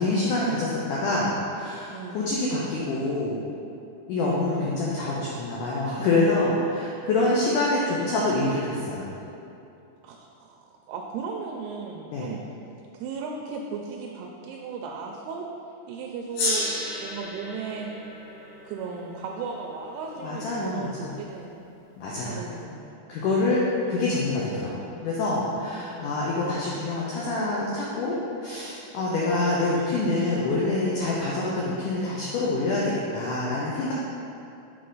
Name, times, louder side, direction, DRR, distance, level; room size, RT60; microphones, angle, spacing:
voice 1, 0.0-3.4 4.1-9.1 12.1-12.3 20.2-21.1 22.0-22.4 23.1-28.1 28.4-33.9, left 2 dB, 90° left, -5 dB, 1.8 m, -26 dB
voice 2, 1.9-2.3 4.2-4.9 7.2-7.3 8.1-8.2 10.0-12.4 12.9-15.5 15.9-17.9 18.7-21.6 22.2-23.1 25.6-26.7 29.1-29.3, right 5 dB, 85° right, 0 dB, 2.5 m, -37 dB
Gong, 16.3-21.1, left 2 dB, 70° left, 2.8 m, -33 dB
7.6 x 4.3 x 3.9 m, 2.8 s
omnidirectional pair, 4.6 m